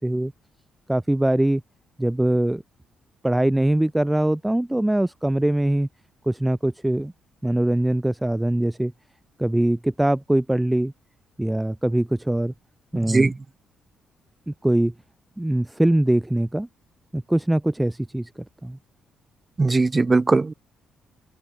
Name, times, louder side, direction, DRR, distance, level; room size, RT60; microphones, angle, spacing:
voice 1, 0.9-1.6 2.0-2.6 3.2-5.9 6.3-7.1 7.4-8.9 9.4-10.9 11.4-12.5 12.9-13.3 14.5-14.9 15.4-16.7 17.1-18.3 18.6-18.8, right 1 dB, 10° right, 4.8 m, -22 dB
voice 2, 19.6-20.5, right 3 dB, 25° right, 6.5 m, -19 dB
open air
cardioid pair, 90°, 0 cm